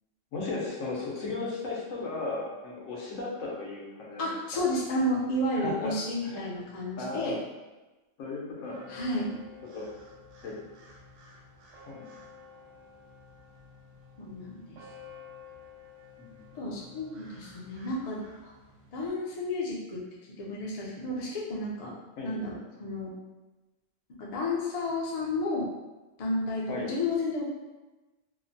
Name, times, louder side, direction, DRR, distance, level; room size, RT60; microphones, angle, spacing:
voice 1, 0.3-4.6 5.5-5.9 6.2-6.5 7.0-7.3 8.2-8.8 9.6-9.9 10.4-10.6 11.9-12.0 16.2-16.4 22.2-22.4 26.7-26.9, left 3 dB, 85° left, -3 dB, 1.1 m, -36 dB
voice 2, 4.2-7.4 8.9-9.3 14.2-14.8 16.5-18.5 18.9-20.0 20.4-21.9 22.2-22.5 22.8-23.1 24.1-25.7 26.2-27.4, left 1 dB, 50° left, -4 dB, 0.4 m, -31 dB
Bell with Crows, 8.6-19.1, left 4 dB, 75° right, 0.9 m, -52 dB
2.9 x 2.1 x 2.6 m, 1.1 s
omnidirectional pair, 1.3 m